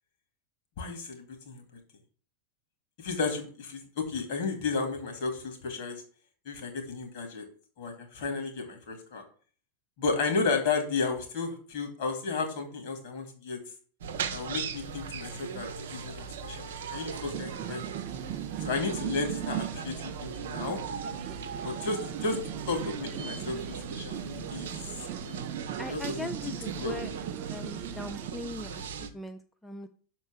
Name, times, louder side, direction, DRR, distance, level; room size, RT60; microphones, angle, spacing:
voice 1, 0.8-1.6 3.0-6.0 6.4-7.4 7.8-9.2 10.0-13.6 14.3-17.8 18.6-20.8 21.6-22.4 22.7-24.7 25.2-25.5 25.9-26.3 26.8-27.2, left 4 dB, 50° left, 4 dB, 2.4 m, -33 dB
sound 1, 14.0-29.1, right 6 dB, 60° right, 0.9 m, -39 dB
sound 2, 17.3-28.3, right 12 dB, 40° right, 0.5 m, -39 dB
voice 2, 25.8-27.1 27.5-29.9, left 1 dB, 5° left, 6 dB, 0.5 m, -40 dB
6.5 x 4.5 x 6.3 m, 0.42 s
figure-of-eight pair, 90°, 0 cm